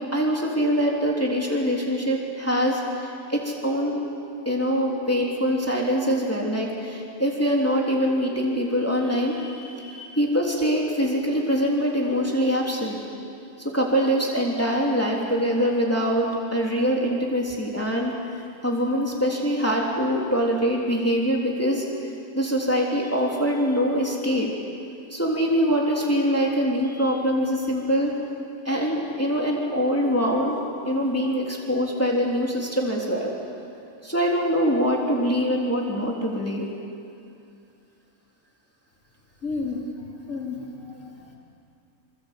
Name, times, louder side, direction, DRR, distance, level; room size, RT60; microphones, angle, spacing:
voice 1, 0.1-4.0 4.4-13.0 13.7-18.1 18.6-21.8 22.3-24.5 25.1-28.1 28.6-30.6 30.8-33.3 34.0-36.7, equal, 10° left, -2 dB, 3.4 m, -24 dB
voice 2, 39.4-39.9 40.3-41.4, left 3 dB, 60° left, -1 dB, 4.0 m, -32 dB
26.5 x 26.0 x 8.4 m, 2.6 s
omnidirectional pair, 1.6 m